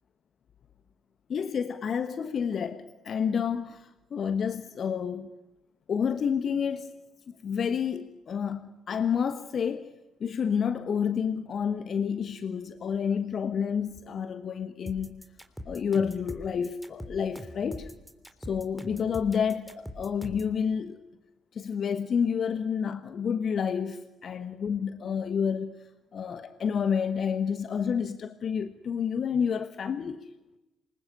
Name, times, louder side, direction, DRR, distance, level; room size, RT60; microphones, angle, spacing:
voice 1, 1.3-5.3 5.9-6.9 7.3-9.9 10.2-15.2 15.6-17.9 18.4-21.0 21.5-30.3, left 7 dB, 45° left, 1.3 m, -29 dB
sound 1, 14.9-20.5, equal, ahead, 3.4 m, -42 dB
27.5 x 21.5 x 10.0 m
figure-of-eight pair, 50°, 0 cm